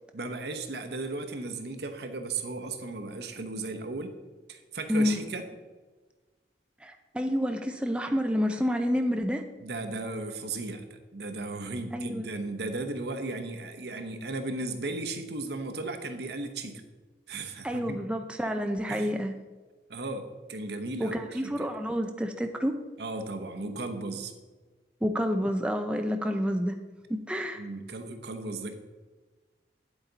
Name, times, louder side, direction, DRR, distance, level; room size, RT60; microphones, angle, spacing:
voice 1, 0.1-4.1 4.5-5.5 9.6-16.8 17.3-18.0 18.9-19.1 19.9-21.7 23.0-24.3 27.5-28.7, right 2 dB, 65° right, 7 dB, 0.9 m, -36 dB
voice 2, 4.9-5.3 6.8-9.4 11.9-12.3 17.6-19.3 21.0-22.8 25.0-26.8 27.3-27.6, equal, 5° right, 5 dB, 0.4 m, -29 dB
9.1 x 8.1 x 4.0 m, 1.3 s
head